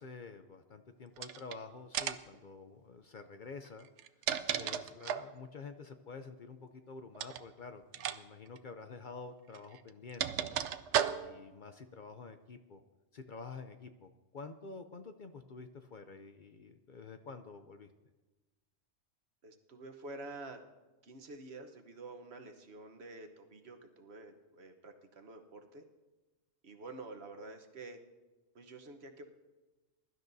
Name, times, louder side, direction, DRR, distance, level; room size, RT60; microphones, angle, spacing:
voice 1, 0.0-3.9 4.5-10.6 11.2-12.8 13.1-17.9, left 4 dB, 50° left, 8 dB, 0.7 m, -49 dB
sound 1, 1.2-1.6 1.9-2.4 3.8-5.3 7.1-7.4 7.9-8.2 8.5-8.6 9.5-11.5, right 10 dB, 85° right, 0.9 m, -35 dB
voice 2, 19.4-20.6 21.0-25.8 26.6-28.0 28.5-29.3, right 2 dB, 65° right, 6 dB, 1.3 m, -49 dB
22.0 x 12.0 x 2.7 m, 1.2 s
omnidirectional pair, 1.2 m